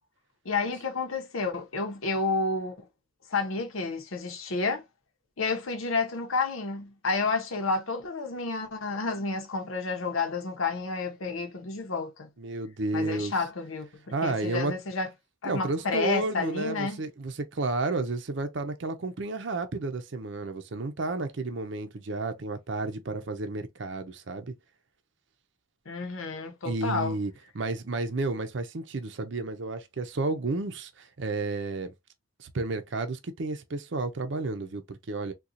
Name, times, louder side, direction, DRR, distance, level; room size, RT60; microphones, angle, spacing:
voice 1, 0.4-2.8 3.3-4.8 5.4-12.3 12.9-13.9 14.2-15.1 15.4-17.0 25.9-27.1, left 4 dB, 90° left, 0.8 m, -30 dB
voice 2, 12.4-13.3 14.1-14.7 15.4-24.5 26.6-31.9 32.4-35.3, right 3 dB, 60° right, 0.6 m, -31 dB
3.8 x 2.3 x 2.7 m
head